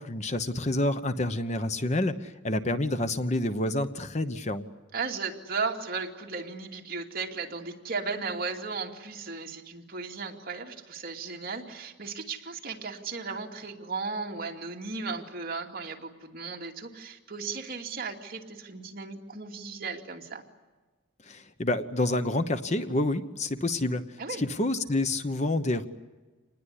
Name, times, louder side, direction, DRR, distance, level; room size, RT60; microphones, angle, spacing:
voice 1, 0.0-4.6 21.3-24.0 24.4-25.8, left 1 dB, 35° left, 10 dB, 1.0 m, -28 dB
voice 2, 4.9-20.4 24.2-24.4, right 4 dB, 45° right, 1 dB, 2.6 m, -35 dB
27.0 x 20.0 x 9.9 m, 1.3 s
head